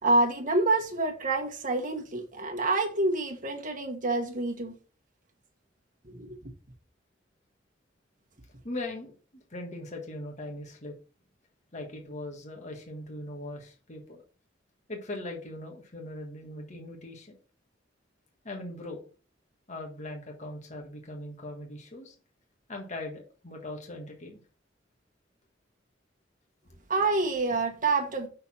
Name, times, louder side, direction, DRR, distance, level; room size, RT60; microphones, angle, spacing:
voice 1, 0.0-4.7 6.0-6.4 26.9-28.3, right 2 dB, 45° right, 1.5 m, -27 dB
voice 2, 8.6-10.9 11.7-14.2 14.9-17.4 18.4-19.0 19.7-22.1 22.7-24.4, left 1 dB, 40° left, 1.6 m, -40 dB
6.2 x 4.2 x 5.7 m
head